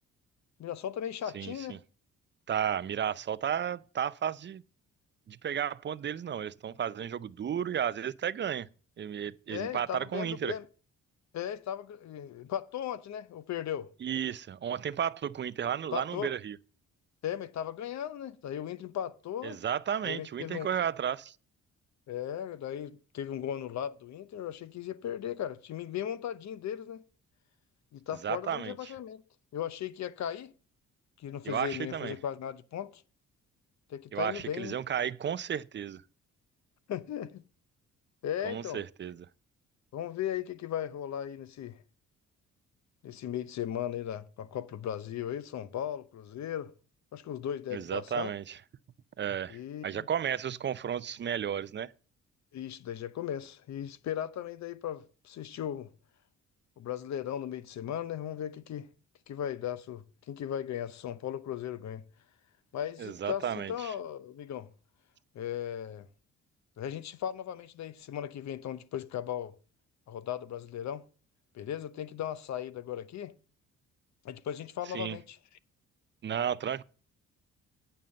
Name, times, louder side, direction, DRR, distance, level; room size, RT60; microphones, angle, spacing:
voice 1, 0.6-1.8 9.5-10.6 11.3-13.9 15.9-16.3 17.2-19.6 20.0-20.7 22.1-27.0 27.9-29.2 29.5-30.5 31.2-33.0 33.9-34.7 36.9-37.4 38.2-38.8 39.9-41.8 43.0-46.7 47.1-48.3 49.5-50.1 52.5-55.9 56.8-58.9 59.3-62.0 62.7-64.7 65.3-66.1 66.8-69.5 70.1-71.0 71.5-73.3 74.2-75.4, left 10 dB, 65° left, 0.9 m, -37 dB
voice 2, 1.3-1.8 2.5-4.6 5.3-8.7 9.0-10.6 14.0-16.6 19.4-21.4 28.2-28.9 31.4-32.1 34.1-36.0 38.4-39.3 47.7-48.6 49.2-51.9 63.0-63.9 74.9-75.2 76.2-76.8, right 9 dB, 40° right, 0.5 m, -33 dB
9.2 x 5.5 x 7.7 m
cardioid pair, 90°, 30 cm